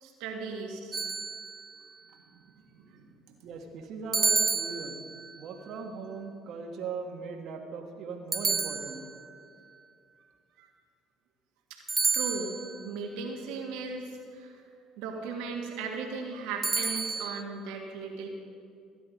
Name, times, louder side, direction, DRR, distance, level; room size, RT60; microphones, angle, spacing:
voice 1, 0.0-1.0 2.1-2.4 2.7-3.1 10.6-10.7 12.1-14.6 15.0-18.3, right 4 dB, 80° right, 1 dB, 1.9 m, -37 dB
sound 1, 0.9-1.8 4.1-5.4 8.3-9.4 11.9-12.8 16.6-17.4, right 5 dB, 30° right, 0.5 m, -30 dB
voice 2, 3.4-5.0 5.3-9.0, right 4 dB, 60° right, 3 dB, 1.8 m, -39 dB
15.5 x 10.5 x 5.3 m, 2.3 s
supercardioid pair, 75°, 0 cm